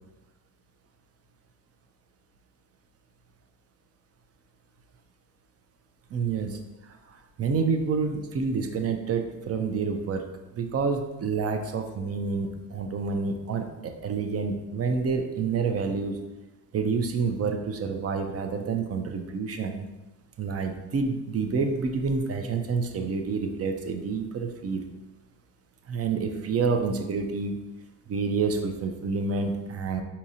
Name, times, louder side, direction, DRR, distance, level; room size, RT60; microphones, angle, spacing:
voice 1, 6.1-6.6 7.1-10.3 10.5-16.2 16.7-19.9 20.4-24.8 25.9-27.6 28.1-30.0, right 5 dB, 35° right, 5 dB, 0.5 m, -28 dB
4.6 x 2.8 x 2.7 m, 1.1 s
cardioid pair, 95°, 43 cm